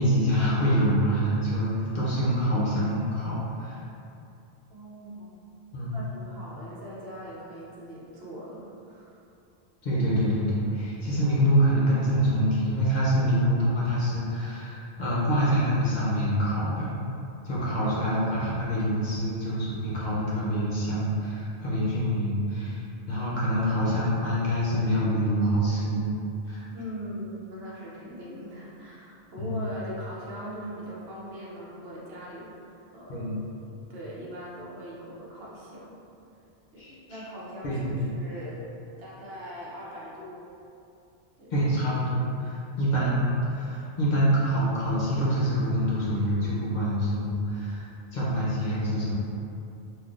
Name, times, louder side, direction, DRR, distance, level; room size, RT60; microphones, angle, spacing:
voice 1, 0.0-3.8 5.7-6.1 9.8-16.9 17.4-26.1 26.5-26.6 29.4-29.7 33.1-33.4 36.8-37.2 37.6-38.1 41.5-49.1, equal, 50° left, -8 dB, 0.7 m, -26 dB
voice 2, 4.7-5.5 5.9-9.2 26.7-33.3 33.7-36.0 36.7-38.6 39.0-40.5 41.4-41.6, equal, 70° right, -6 dB, 0.9 m, -41 dB
3.6 x 2.5 x 2.4 m, 2.7 s
omnidirectional pair, 1.1 m